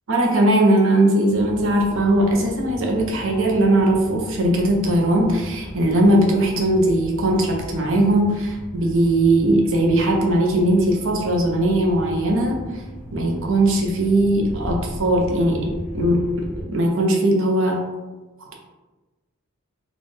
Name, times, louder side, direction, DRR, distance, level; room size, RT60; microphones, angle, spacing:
voice 1, 0.1-12.8 13.1-17.8, right 1 dB, 60° right, 0 dB, 0.7 m, -19 dB
sound 1, 1.3-16.6, equal, 40° left, 1.1 m, -36 dB
4.2 x 2.3 x 3.2 m, 1.2 s
head